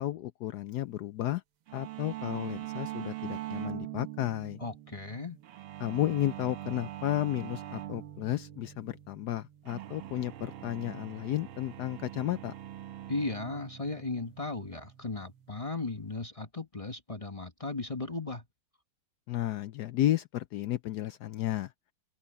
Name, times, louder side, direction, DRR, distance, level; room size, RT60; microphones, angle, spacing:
voice 1, 0.0-1.4 1.7-4.6 5.8-12.5 19.3-21.7, left 13 dB, 75° left, 0.9 m, -32 dB
sound 1, 1.7-16.1, right 14 dB, 80° right, 1.8 m, -43 dB
voice 2, 4.6-5.4 13.1-18.4, left 3 dB, 25° left, 0.7 m, -36 dB
omnidirectional pair, 2.3 m